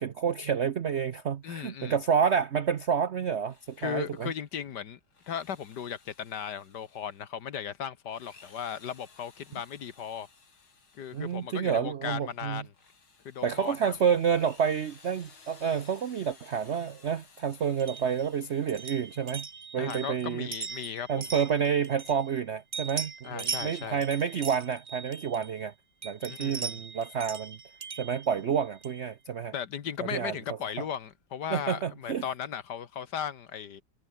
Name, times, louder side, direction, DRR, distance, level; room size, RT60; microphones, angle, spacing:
voice 1, 0.0-4.3 11.1-12.6 13.4-19.5 19.7-20.5 21.1-25.7 26.0-27.6 28.0-29.5 30.1-30.3 31.5-32.2, right 7 dB, 75° right, 0.6 m, -29 dB
voice 2, 1.4-2.0 3.8-5.0 5.3-10.3 10.9-12.7 13.3-13.9 19.8-21.1 23.2-24.0 26.3-26.8 29.5-33.8, left 8 dB, 60° left, 1.7 m, -37 dB
Drill, 3.3-4.5 5.0-7.4 8.0-11.7 12.2-19.6, left 4 dB, 90° left, 4.8 m, -58 dB
sound 1, 17.8-22.4 22.7-25.6 26.0-29.1, right 5 dB, 35° right, 1.0 m, -40 dB
omnidirectional pair, 2.2 m